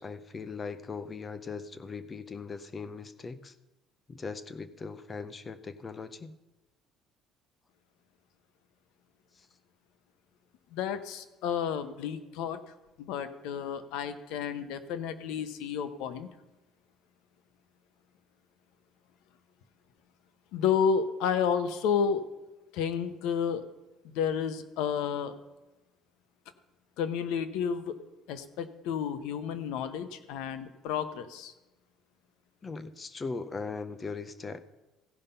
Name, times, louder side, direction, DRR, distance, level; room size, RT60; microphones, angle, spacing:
voice 1, 0.0-3.5 4.1-6.3 9.4-9.5 32.6-34.6, left 4 dB, 20° left, 12 dB, 0.6 m, -39 dB
voice 2, 10.7-12.6 13.0-16.3 20.5-22.2 22.7-23.6 24.0-25.3 27.0-28.0 28.3-31.5, left 7 dB, 85° left, 11 dB, 0.9 m, -31 dB
15.5 x 5.4 x 5.5 m, 1.0 s
cardioid pair, 155°, 0 cm